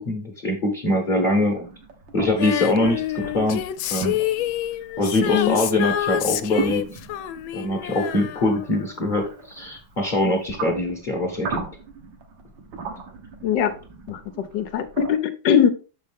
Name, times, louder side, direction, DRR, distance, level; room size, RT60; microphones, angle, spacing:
voice 1, 0.0-1.7 2.1-3.6 3.9-4.2 5.0-6.8 7.5-11.6, left 1 dB, 35° left, 2 dB, 1.0 m, -23 dB
sound 1, 1.3-15.2, right 5 dB, 70° right, 1.8 m, -38 dB
Female singing, 2.4-9.4 10.5-10.6, left 13 dB, 90° left, 1.3 m, -28 dB
voice 2, 5.2-5.6 13.4-13.7 14.1-15.7, left 8 dB, 70° left, 10 dB, 1.2 m, -21 dB
6.5 x 5.3 x 3.4 m, 0.34 s
omnidirectional pair, 2.1 m